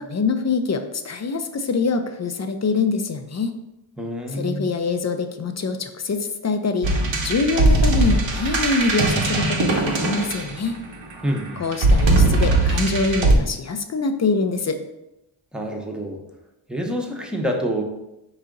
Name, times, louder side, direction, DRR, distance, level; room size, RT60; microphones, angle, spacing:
voice 1, 0.0-3.5 4.3-6.9 7.2-10.7 11.6-14.8, left 4 dB, 35° left, 7 dB, 0.4 m, -24 dB
voice 2, 4.0-4.7 11.2-11.6 15.5-16.2 16.7-17.8, equal, ahead, 1 dB, 0.7 m, -27 dB
sound 1, 6.8-10.9 11.7-13.4, right 2 dB, 65° right, 0.9 m, -19 dB
4.8 x 2.8 x 3.8 m, 0.90 s
wide cardioid pair, 70°, 49 cm